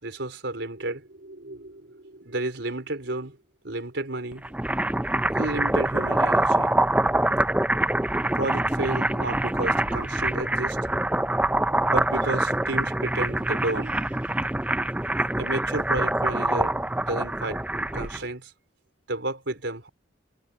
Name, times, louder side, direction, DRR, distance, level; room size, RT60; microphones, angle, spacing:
voice 1, 0.0-3.4 3.6-4.5 5.3-6.8 8.4-10.8 11.9-14.2 15.4-17.6 17.9-18.5 19.1-19.9, right 2 dB, 75° right, 4.3 m, -32 dB
sound 1, 4.3-18.2, right 1 dB, 5° right, 0.4 m, -25 dB
head